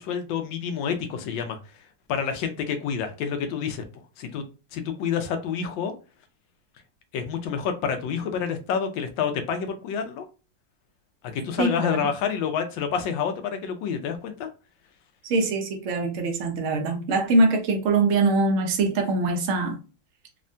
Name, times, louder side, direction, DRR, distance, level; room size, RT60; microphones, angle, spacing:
voice 1, 0.0-1.6 2.1-3.8 4.2-4.4 4.7-5.9 7.1-10.3 11.3-14.5, left 7 dB, 85° left, 1.3 m, -28 dB
voice 2, 11.6-12.1 15.3-19.8, right 3 dB, 65° right, 0.8 m, -23 dB
3.5 x 2.1 x 2.5 m
omnidirectional pair, 2.0 m